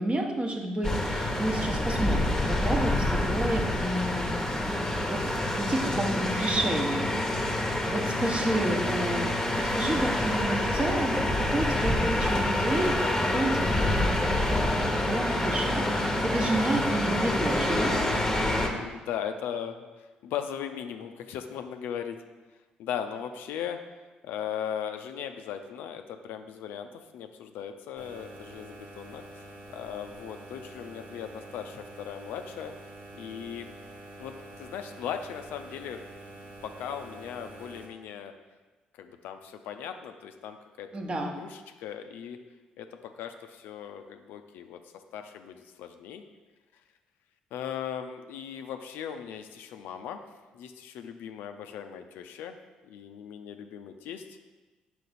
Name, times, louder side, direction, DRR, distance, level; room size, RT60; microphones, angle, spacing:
voice 1, 0.0-4.3 5.1-7.1 7.4-9.3 9.6-17.9 40.9-41.3, right 1 dB, 30° right, 2 dB, 1.0 m, -30 dB
sound 1, 0.8-18.7, left 1 dB, 15° left, 1.0 m, -27 dB
voice 2, 18.4-22.2 22.8-23.8 24.2-29.4 29.7-32.7 33.2-33.7 34.2-36.0 36.6-38.3 38.9-41.0 41.4-42.4 42.8-44.8 45.1-46.2 47.5-50.2 50.5-52.5 52.8-54.4, left 8 dB, 70° left, 6 dB, 0.4 m, -38 dB
sound 2, 28.0-37.9, right 2 dB, 55° right, 1.1 m, -47 dB
5.2 x 4.5 x 4.1 m, 1.2 s
hypercardioid pair, 45°, 4 cm